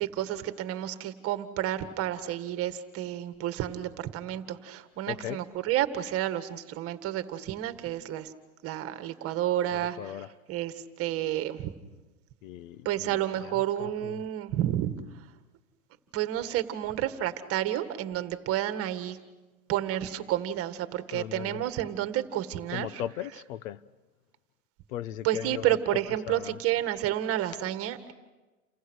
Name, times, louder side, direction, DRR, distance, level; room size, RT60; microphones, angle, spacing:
voice 1, 0.0-8.3 8.6-10.0 10.5-11.7 12.9-14.9 16.1-19.2 19.7-22.9 25.2-28.1, right 12 dB, 30° right, 1.8 m, -30 dB
voice 2, 5.1-5.4 9.7-10.3 12.4-13.2 13.4-14.2 21.1-21.6 22.7-23.8 24.9-25.8 26.3-26.6, left 12 dB, 65° left, 1.0 m, -38 dB
30.0 x 26.5 x 6.4 m
hypercardioid pair, 135°, 43 cm